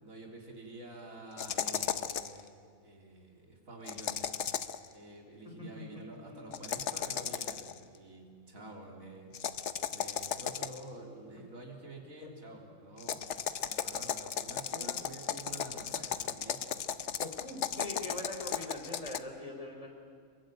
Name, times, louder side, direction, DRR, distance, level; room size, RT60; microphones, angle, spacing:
voice 1, 0.0-13.3 13.6-16.9, right 2 dB, 70° right, 0 dB, 4.0 m, -49 dB
sound 1, 1.4-2.4 3.8-4.8 6.5-7.8 9.3-10.9 13.0-19.2, left 8 dB, 55° left, 1.1 m, -35 dB
voice 2, 17.2-19.9, left 1 dB, 25° left, 2 dB, 3.7 m, -43 dB
26.5 x 22.5 x 9.1 m, 2.1 s
omnidirectional pair, 1.5 m